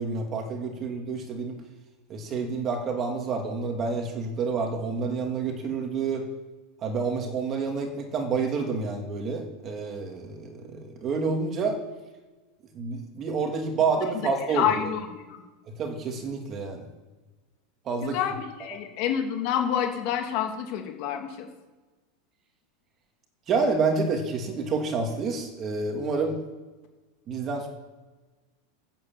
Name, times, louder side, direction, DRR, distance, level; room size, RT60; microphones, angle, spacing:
voice 1, 0.0-1.6 2.1-6.2 6.8-11.8 12.7-14.8 15.8-16.8 17.8-18.2 23.5-26.4 27.3-27.7, right 4 dB, 30° right, 3 dB, 2.9 m, -28 dB
voice 2, 14.5-15.4 18.0-21.5, left 9 dB, 50° left, 4 dB, 2.6 m, -28 dB
14.5 x 8.8 x 7.9 m, 1.2 s
supercardioid pair, 150°, 0 cm